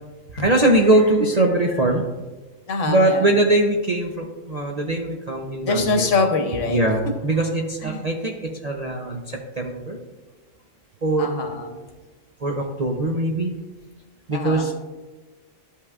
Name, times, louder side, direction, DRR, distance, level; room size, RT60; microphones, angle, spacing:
voice 1, 0.3-2.0 2.9-6.1 6.7-10.0 11.0-11.3 12.4-13.5 14.3-14.7, right 1 dB, 45° right, 1 dB, 0.5 m, -21 dB
voice 2, 2.7-3.3 5.6-6.8 7.8-8.1 11.2-11.8 14.3-14.7, left 3 dB, 70° left, 4 dB, 1.2 m, -24 dB
12.0 x 5.6 x 2.4 m, 1.2 s
omnidirectional pair, 1.4 m